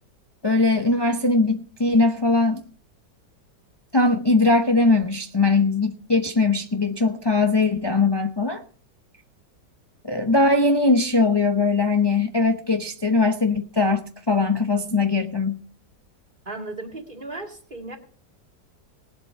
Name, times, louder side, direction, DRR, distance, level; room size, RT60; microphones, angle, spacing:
voice 1, 0.4-2.6 3.9-8.6 10.0-15.6, left 3 dB, 40° left, 0.3 m, -20 dB
voice 2, 16.5-18.0, right 2 dB, 30° right, 2.3 m, -35 dB
19.0 x 7.8 x 5.6 m
omnidirectional pair, 1.9 m